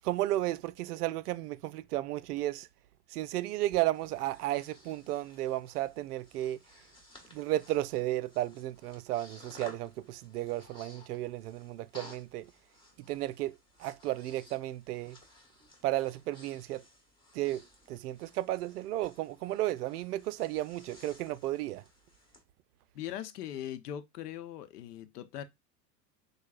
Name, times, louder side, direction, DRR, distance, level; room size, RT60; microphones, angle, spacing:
voice 1, 0.0-2.7 3.1-6.6 7.3-12.5 13.1-13.5 13.8-15.2 15.8-16.8 17.3-17.6 17.9-21.8, right 15 dB, 65° right, 0.5 m, -33 dB
Breathing, 3.7-22.4, left 1 dB, 10° left, 1.6 m, -57 dB
voice 2, 22.9-25.4, left 11 dB, 70° left, 0.8 m, -40 dB
6.3 x 2.2 x 2.4 m
hypercardioid pair, 95°, 50 cm